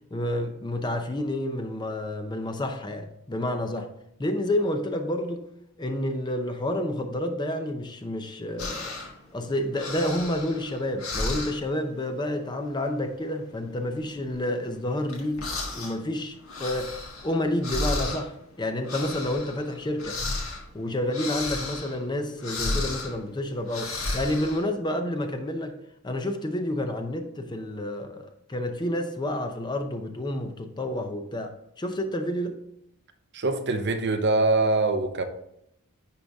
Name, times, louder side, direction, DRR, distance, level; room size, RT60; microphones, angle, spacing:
voice 1, 0.1-3.9 4.2-5.5 5.8-9.0 9.3-15.5 15.7-20.2 20.7-25.7 26.0-32.6, left 1 dB, 20° left, 0.6 m, -29 dB
sound 1, 8.6-9.3 9.6-11.8 12.1-12.5 12.7-13.1 13.5-16.0 16.3-24.7, left 2 dB, 75° left, 1.6 m, -33 dB
voice 2, 33.3-35.2, right 2 dB, 50° right, 0.8 m, -23 dB
9.9 x 3.9 x 3.5 m
head